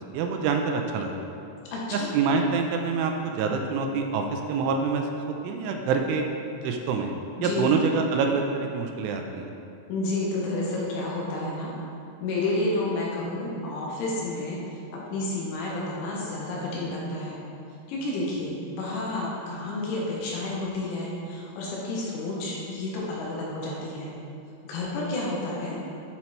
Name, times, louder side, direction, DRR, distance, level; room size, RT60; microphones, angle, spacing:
voice 1, 0.1-1.2 1.9-5.0 5.4-6.2 6.6-7.1 7.4-9.5, right 5 dB, 85° right, 3 dB, 2.9 m, -26 dB
voice 2, 1.7-2.2 7.4-7.7 9.9-11.7 12.2-14.6 14.9-17.4 17.9-24.1 24.6-25.8, left 2 dB, 80° left, -4 dB, 3.6 m, -30 dB
9.4 x 4.4 x 4.3 m, 2.6 s
omnidirectional pair, 5.6 m